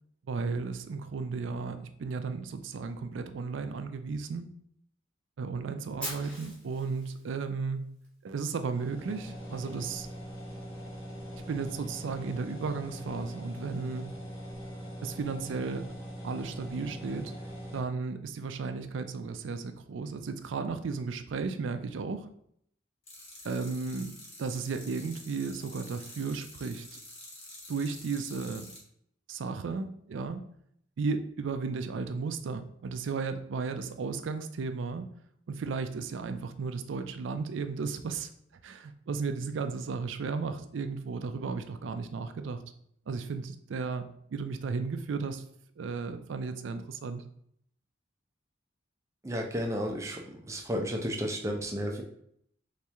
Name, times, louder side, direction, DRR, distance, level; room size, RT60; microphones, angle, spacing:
voice 1, 0.3-4.5 5.4-7.9 8.2-10.1 11.5-14.1 15.0-15.9 16.2-17.3 17.7-22.3 23.4-24.1 24.4-27.0 27.7-28.7 29.3-30.4 31.0-35.1 35.5-38.3 38.6-42.6 43.1-44.0 44.3-45.4 45.8-47.2, right 4 dB, 75° right, 8 dB, 0.4 m, -34 dB
Fire, 6.0-8.1, equal, 5° left, 1.2 m, -42 dB
sound 1, 8.7-17.8, equal, 80° left, 1.3 m, -42 dB
sound 2, 23.1-28.8, left 1 dB, 35° left, 1.2 m, -48 dB
voice 2, 49.2-52.0, equal, 15° right, 2 dB, 0.5 m, -33 dB
3.2 x 3.0 x 3.5 m, 0.69 s
head